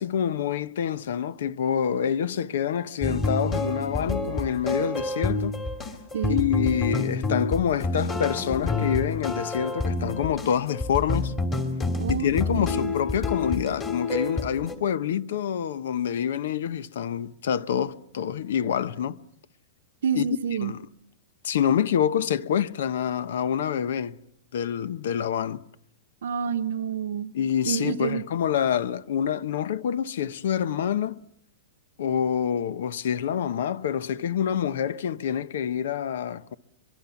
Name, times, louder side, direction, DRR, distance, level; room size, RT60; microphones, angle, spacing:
voice 1, 0.0-5.6 6.3-11.3 12.1-19.2 20.1-20.3 20.6-20.8 21.4-24.2 24.5-25.6 27.3-31.2 32.0-36.5, left 8 dB, 65° left, 1.0 m, -27 dB
sound 1, 3.0-14.7, left 2 dB, 15° left, 2.8 m, -28 dB
voice 2, 12.0-12.9 20.0-20.7 26.2-27.3 27.6-28.2, right 7 dB, 90° right, 1.0 m, -29 dB
24.0 x 22.5 x 7.1 m
supercardioid pair, 170°, 0 cm